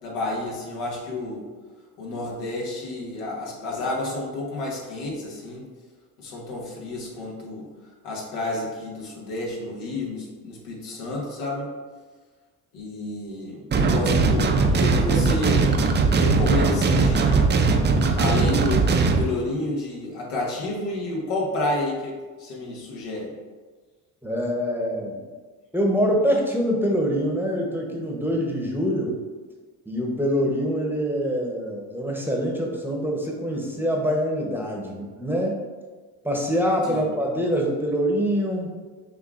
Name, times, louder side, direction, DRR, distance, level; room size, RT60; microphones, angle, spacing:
voice 1, 0.0-1.5 2.0-5.6 6.2-7.7 8.0-11.7 12.7-15.7 16.2-17.5 18.2-22.1 22.4-23.3 36.8-37.0, left 2 dB, 85° left, -3 dB, 1.2 m, -30 dB
sound 1, 13.7-19.2, right 4 dB, 25° right, 0.4 m, -20 dB
voice 2, 24.2-25.2 25.7-29.2 29.9-35.6 36.2-38.7, equal, 5° right, -1 dB, 0.8 m, -25 dB
6.7 x 2.5 x 2.4 m, 1.4 s
supercardioid pair, 75°, 43 cm